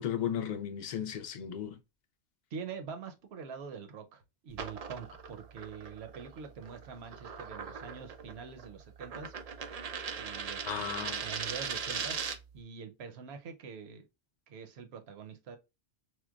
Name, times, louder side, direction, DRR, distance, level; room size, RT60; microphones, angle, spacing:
voice 1, 0.0-1.8 10.7-11.2, left 9 dB, 55° left, 0.5 m, -35 dB
voice 2, 2.5-9.3 10.1-12.2 12.5-14.1 14.5-15.6, right 6 dB, 65° right, 0.9 m, -45 dB
sound 1, 4.5-12.6, right 6 dB, 90° right, 0.3 m, -40 dB
4.5 x 2.1 x 2.3 m
omnidirectional pair, 1.3 m